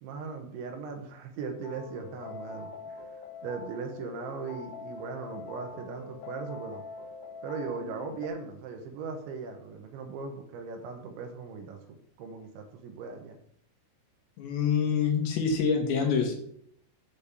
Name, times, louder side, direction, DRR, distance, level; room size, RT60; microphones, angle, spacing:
voice 1, 0.0-3.0 3.4-6.8 7.4-11.8 12.2-13.4, right 4 dB, 75° right, 4 dB, 3.2 m, -38 dB
sound 1, 1.6-8.3, left 4 dB, 85° left, 3.6 m, -44 dB
voice 2, 14.4-16.3, left 6 dB, 70° left, 2 dB, 3.3 m, -26 dB
8.4 x 5.3 x 7.2 m, 0.69 s
omnidirectional pair, 5.8 m